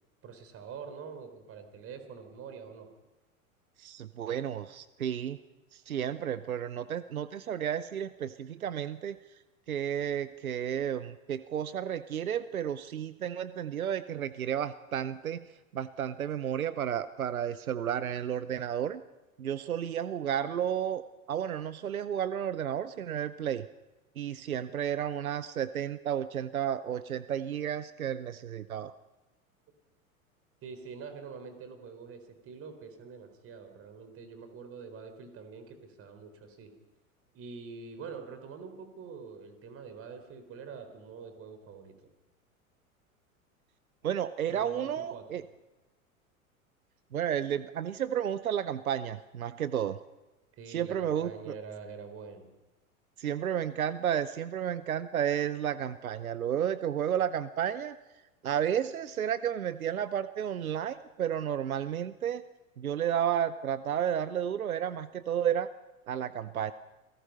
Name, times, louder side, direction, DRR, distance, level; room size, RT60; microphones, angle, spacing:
voice 1, 0.2-2.9 30.6-36.7 37.3-41.9 44.5-45.4 50.5-52.5, right 5 dB, 30° right, 8 dB, 4.1 m, -45 dB
voice 2, 3.8-5.4 5.7-9.2 9.7-15.4 15.7-19.0 19.4-21.0 21.3-23.7 24.2-28.9 44.0-45.4 47.1-50.0 50.7-51.5 53.2-58.0 58.4-62.4 62.8-65.7 66.1-66.7, right 9 dB, 75° right, 15 dB, 0.8 m, -32 dB
28.5 x 17.5 x 5.5 m, 1.1 s
figure-of-eight pair, 90°, 43 cm